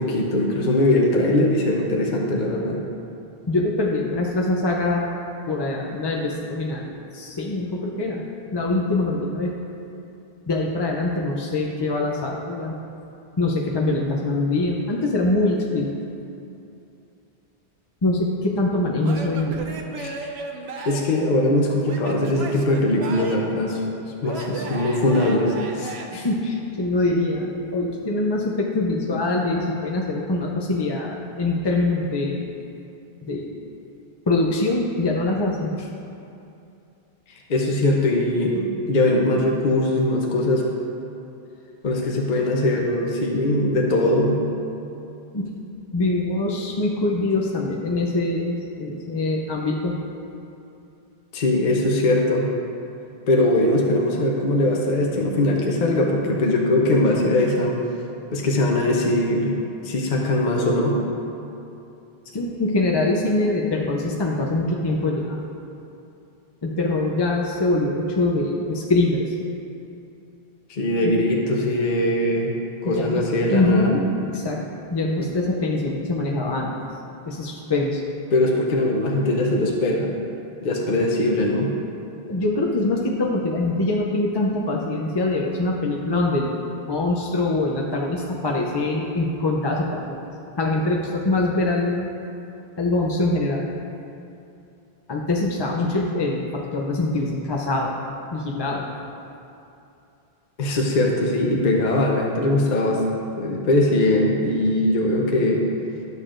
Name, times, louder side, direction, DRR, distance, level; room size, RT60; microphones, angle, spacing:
voice 1, 0.0-2.8 20.0-20.2 20.9-23.8 24.2-25.9 37.5-40.6 41.8-44.4 51.3-52.5 53.3-57.8 58.3-59.5 59.8-61.0 70.7-72.5 72.8-73.9 75.2-75.3 78.3-80.1 80.6-81.7 100.6-105.6, left 1 dB, 50° left, -1 dB, 0.8 m, -21 dB
voice 2, 3.5-5.1 5.5-8.2 8.5-9.5 10.5-12.7 13.4-15.9 18.0-19.6 26.1-32.4 33.2-33.6 34.3-35.9 45.3-45.5 45.9-50.0 62.3-65.4 66.6-69.3 71.0-71.2 72.8-73.2 73.5-74.6 74.9-76.7 77.3-78.0 82.3-86.6 86.9-90.2 90.6-92.1 92.8-93.7 95.1-97.9 98.3-98.8, left 2 dB, 30° left, -2 dB, 0.5 m, -23 dB
Male speech man speaking / Yell / Laughter, 19.0-21.2 21.8-23.6 24.2-26.1, right 3 dB, 85° right, 0.9 m, -35 dB
12.0 x 6.7 x 2.5 m, 2.7 s
omnidirectional pair, 1.0 m